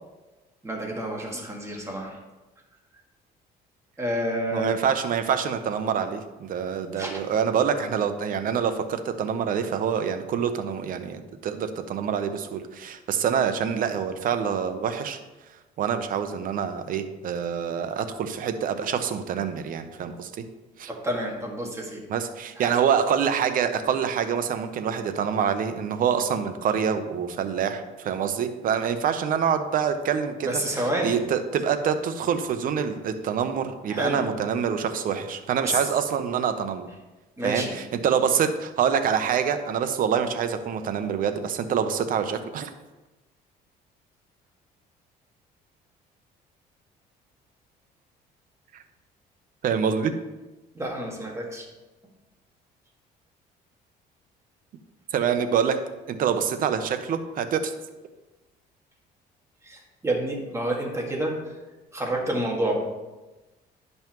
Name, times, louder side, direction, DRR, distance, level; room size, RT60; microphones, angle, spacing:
voice 1, 0.6-2.2 4.0-4.7 7.0-7.2 20.9-22.0 22.6-22.7 30.4-31.2 33.9-34.3 35.6-35.8 37.4-37.8 50.8-51.7 59.6-61.3 61.9-62.8, right 1 dB, 15° right, -1 dB, 1.8 m, -29 dB
voice 2, 4.5-15.2 15.8-20.4 20.8-20.9 22.1-36.9 37.4-42.7 49.6-50.1 55.1-55.8 56.1-57.7, right 7 dB, 55° right, 9 dB, 0.7 m, -26 dB
10.5 x 5.5 x 3.0 m, 1.1 s
cardioid pair, 110°, 17 cm